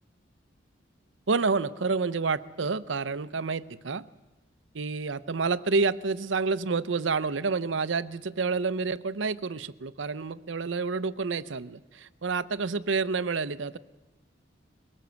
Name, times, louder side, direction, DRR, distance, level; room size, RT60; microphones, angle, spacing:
voice 1, 1.3-4.1 4.7-13.8, right 4 dB, 80° right, 17 dB, 0.7 m, -29 dB
22.0 x 18.0 x 8.2 m, 1.1 s
head